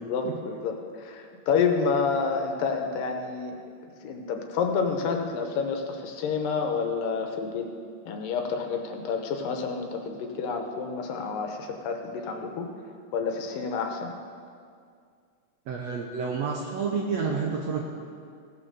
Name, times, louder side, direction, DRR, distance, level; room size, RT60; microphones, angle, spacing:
voice 1, 0.0-3.5 4.0-7.7 8.1-12.7 13.1-14.1, left 5 dB, 85° left, 4 dB, 2.6 m, -29 dB
voice 2, 15.7-17.9, right 5 dB, 70° right, -1 dB, 1.6 m, -29 dB
15.5 x 6.2 x 6.6 m, 2.2 s
omnidirectional pair, 3.9 m